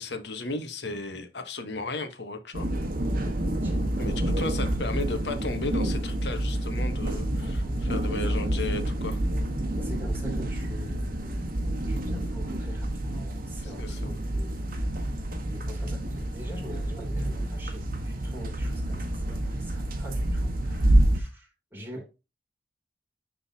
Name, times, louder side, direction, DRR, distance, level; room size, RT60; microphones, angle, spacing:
voice 1, 0.0-2.7 4.0-9.2 13.6-14.0, left 3 dB, 65° left, 1.2 m, -35 dB
sound 1, 2.5-21.2, right 1 dB, 50° right, 1.3 m, -28 dB
voice 2, 3.6-4.1 7.4-8.5 9.8-14.8 15.4-22.1, equal, 10° right, 3.0 m, -44 dB
9.9 x 3.8 x 2.8 m
head